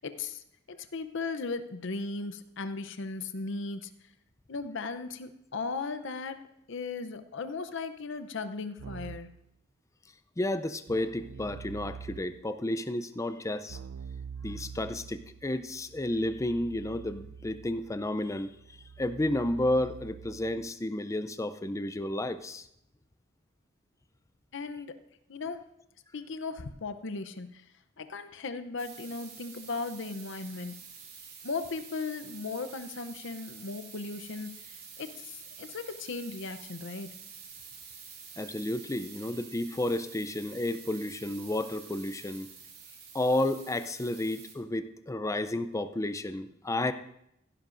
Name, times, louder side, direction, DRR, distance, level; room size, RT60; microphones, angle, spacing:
voice 1, 0.0-3.9 4.5-6.4 6.7-9.3 24.5-24.9 25.3-25.6 26.1-27.6 28.0-30.8 31.4-37.1, left 4 dB, 65° left, 10 dB, 0.7 m, -37 dB
Keyboard (musical), 8.8-9.4 10.9-12.5 13.7-20.7, right 6 dB, 75° right, 0.3 m, -46 dB
voice 2, 10.4-13.8 14.4-18.5 19.0-22.7 38.4-42.5 43.1-46.9, left 1 dB, 15° left, 11 dB, 0.5 m, -31 dB
sound 1, 28.8-44.5, right 6 dB, 50° right, 2.7 m, -48 dB
16.0 x 11.0 x 2.6 m, 0.78 s
head